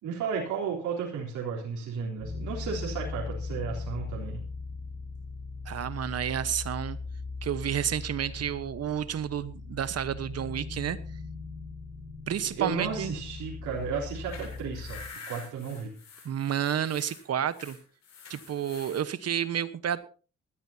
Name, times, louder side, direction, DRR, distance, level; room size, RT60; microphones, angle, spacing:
voice 1, 0.0-4.4 12.6-16.0, right 6 dB, 80° right, -4 dB, 3.8 m, -34 dB
sound 1, 2.2-15.1, left 4 dB, 15° left, 3.7 m, -39 dB
voice 2, 5.6-7.0 7.4-11.0 12.3-13.1 16.2-17.8 18.3-20.0, right 9 dB, 55° right, 14 dB, 1.2 m, -30 dB
sound 2, 14.0-19.0, left 4 dB, 65° left, 7.6 m, -47 dB
19.5 x 13.5 x 2.8 m, 0.36 s
cardioid pair, 90°, 30 cm